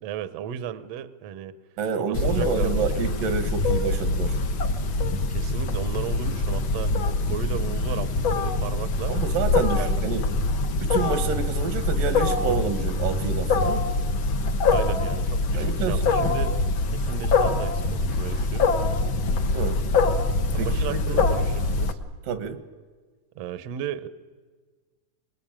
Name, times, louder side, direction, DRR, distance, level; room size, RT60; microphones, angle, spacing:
voice 1, 0.0-1.5 2.0-3.0 5.3-6.9 7.3-9.1 9.8-10.1 14.6-16.6 16.9-18.7 20.5-22.0 23.4-24.1, right 9 dB, 65° right, 13 dB, 1.7 m, -35 dB
voice 2, 1.8-4.4 8.7-8.8 9.1-10.2 10.8-13.9 15.5-16.6 19.5-19.8 20.6-21.2 22.3-22.6, right 6 dB, 80° right, 10 dB, 2.9 m, -29 dB
Wild animals, 2.1-21.9, left 3 dB, 60° left, 1.3 m, -24 dB
24.5 x 21.0 x 9.0 m, 1.4 s
omnidirectional pair, 3.8 m